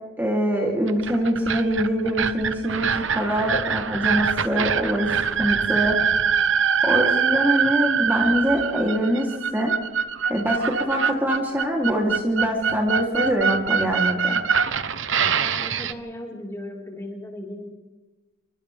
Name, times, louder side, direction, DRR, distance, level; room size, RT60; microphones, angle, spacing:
voice 1, 0.2-6.0 6.8-9.7 10.3-14.4, equal, 10° right, -2 dB, 3.3 m, -24 dB
sound 1, 0.9-15.9, right 6 dB, 70° right, 1.1 m, -24 dB
voice 2, 15.3-17.7, left 1 dB, 15° left, -1 dB, 4.6 m, -37 dB
29.0 x 24.5 x 3.6 m, 1.2 s
head